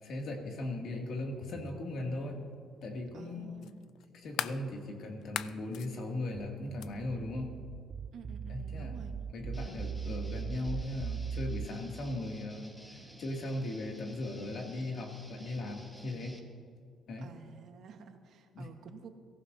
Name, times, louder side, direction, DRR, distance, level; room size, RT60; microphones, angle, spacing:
voice 1, 0.0-2.4 2.8-3.5 4.1-7.6 8.5-9.0 9.3-16.4 17.1-17.3 18.5-18.7, left 2 dB, 60° left, 1 dB, 2.4 m, -38 dB
sound 1, 1.7-1.8 3.6-4.6 5.2-5.9 6.8-6.9, left 11 dB, 75° left, 0.4 m, -38 dB
voice 2, 3.1-3.9 8.1-9.1 17.2-19.1, right 6 dB, 60° right, 5 dB, 1.3 m, -51 dB
sound 2, 6.3-11.7, right 6 dB, 30° right, 0.4 m, -39 dB
Guitar, 9.5-16.4, equal, 5° left, 1.4 m, -54 dB
23.0 x 15.0 x 2.7 m, 2.2 s
cardioid pair, 145°, 0 cm